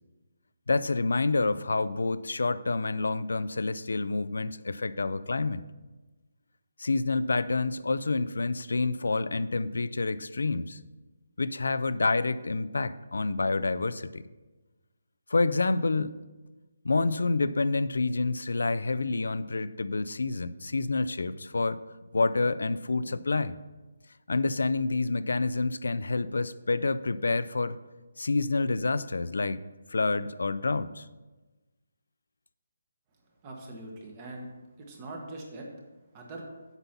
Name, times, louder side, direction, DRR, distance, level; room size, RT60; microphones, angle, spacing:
voice 1, 0.7-5.6 6.8-10.8 11.4-14.2 15.3-16.2 16.8-21.8 22.1-23.6 24.3-27.8 28.2-29.6 29.9-31.1, left 3 dB, 90° left, 15 dB, 0.4 m, -28 dB
voice 2, 33.4-34.5 34.8-35.7 36.1-36.4, right 2 dB, 20° right, 0 dB, 1.2 m, -42 dB
8.0 x 5.5 x 5.8 m, 1.2 s
hypercardioid pair, 175°, 0 cm